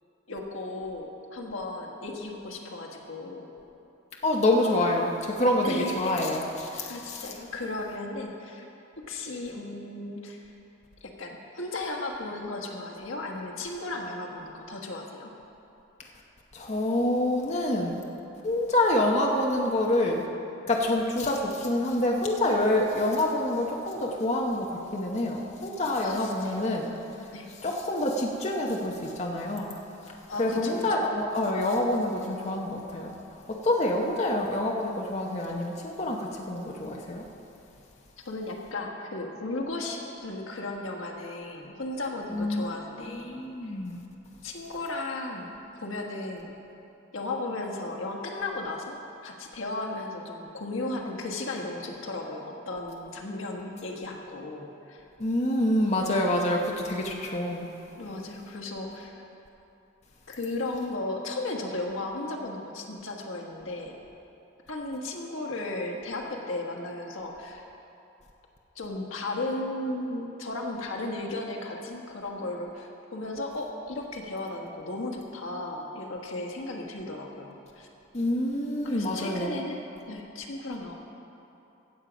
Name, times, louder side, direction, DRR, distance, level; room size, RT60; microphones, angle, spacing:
voice 1, 0.3-3.5 5.6-6.1 6.9-8.7 9.1-10.5 11.0-15.3 26.0-26.6 27.3-27.5 30.3-31.0 34.0-34.2 38.2-43.8 44.4-45.5 45.8-46.5 47.1-49.0 49.2-55.0 57.9-59.2 60.3-64.0 64.7-67.7 68.7-77.9 78.8-79.8 80.1-80.9, left 2 dB, 85° left, 0 dB, 1.4 m, -35 dB
voice 2, 4.2-7.2 16.5-18.0 18.4-20.3 20.7-27.0 27.6-29.7 30.4-37.3 42.3-42.7 43.1-44.0 55.2-57.7 78.1-79.6, left 1 dB, 35° left, -1 dB, 0.9 m, -27 dB
15.5 x 7.3 x 5.1 m, 2.9 s
head